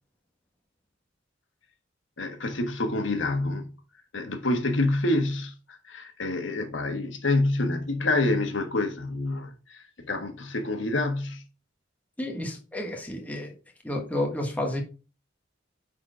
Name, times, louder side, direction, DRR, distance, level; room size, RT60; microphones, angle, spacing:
voice 1, 2.2-3.7 4.1-11.4, left 2 dB, 85° left, 1.5 m, -27 dB
voice 2, 12.2-13.5 13.8-14.8, left 1 dB, 10° left, 1.3 m, -31 dB
9.6 x 4.3 x 3.8 m
head